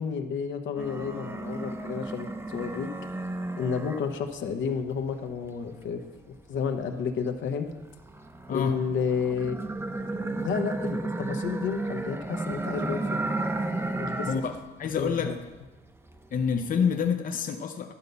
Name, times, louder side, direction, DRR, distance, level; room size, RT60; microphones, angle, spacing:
voice 1, 0.0-2.9 3.6-6.0 6.5-7.7 8.5-9.6 10.4-13.2 14.0-14.3 15.0-15.4, left 6 dB, 70° left, 6 dB, 0.9 m, -31 dB
sound 1, 0.8-4.4 4.9-7.1 7.7-14.6 14.9-15.7 16.0-17.1, right 2 dB, 10° right, 0.7 m, -33 dB
voice 2, 14.3-15.3 16.3-17.9, left 6 dB, 45° left, 5 dB, 0.6 m, -28 dB
11.0 x 4.0 x 6.8 m, 1.2 s
cardioid pair, 90°, 20 cm